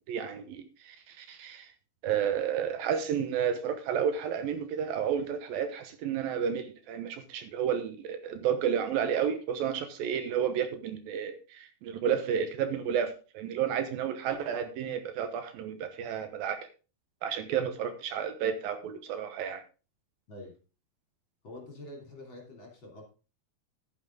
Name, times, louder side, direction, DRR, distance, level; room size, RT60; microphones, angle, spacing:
voice 1, 0.1-1.7 2.0-16.7 17.2-19.6, right 8 dB, 75° right, 8 dB, 2.8 m, -31 dB
voice 2, 21.4-23.1, left 1 dB, 35° left, 0 dB, 3.4 m, -46 dB
11.5 x 9.7 x 3.8 m, 0.33 s
omnidirectional pair, 4.3 m